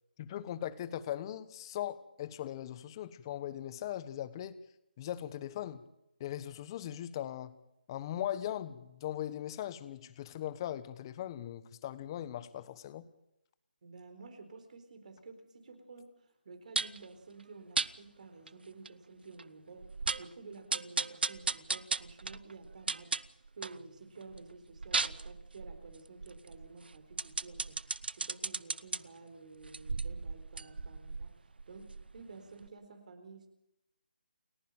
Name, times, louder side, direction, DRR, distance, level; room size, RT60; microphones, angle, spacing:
voice 1, 0.2-4.6 5.0-5.8 6.2-7.5 7.9-13.0, left 11 dB, 25° left, 14 dB, 1.2 m, -39 dB
voice 2, 13.8-19.9 20.2-23.2 23.6-33.5, right 3 dB, 55° right, 7 dB, 4.2 m, -52 dB
sound 1, 16.8-17.0 17.8-17.9 18.5-18.6 18.9-19.0 19.4-19.5 19.8-20.3 20.7-23.8 24.2-29.0 29.6-32.3 32.6-32.7, right 4 dB, 80° right, 0.7 m, -36 dB
29.0 x 10.0 x 9.0 m, 0.83 s
figure-of-eight pair, 160°, 5 cm